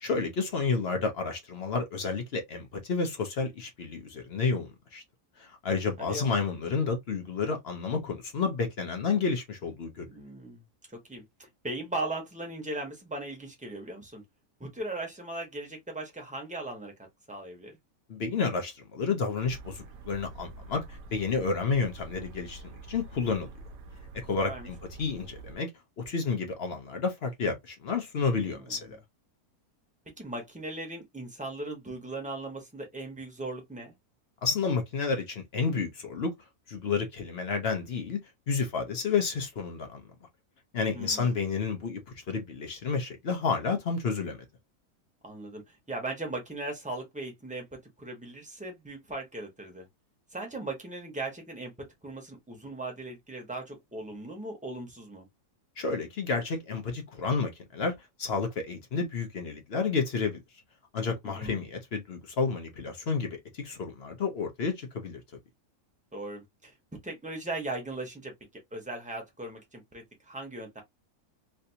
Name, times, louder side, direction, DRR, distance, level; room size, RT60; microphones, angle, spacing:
voice 1, 0.0-5.0 5.4-10.1 18.1-23.5 24.2-25.7 26.0-29.0 34.4-36.3 36.7-38.2 38.5-40.0 40.7-44.4 55.8-60.4 60.9-65.2, left 5 dB, 50° left, 0.8 m, -30 dB
voice 2, 6.0-6.4 10.0-10.6 10.9-14.2 14.6-16.9 17.3-17.8 24.4-24.7 28.3-29.0 30.2-33.9 40.9-41.4 45.2-47.6 48.0-49.8 50.3-51.7 52.0-55.3 61.2-61.6 66.1-66.7 67.0-70.8, right 2 dB, 5° right, 0.8 m, -38 dB
sound 1, 19.4-25.6, right 3 dB, 70° right, 1.2 m, -46 dB
3.3 x 2.6 x 2.7 m
omnidirectional pair, 1.7 m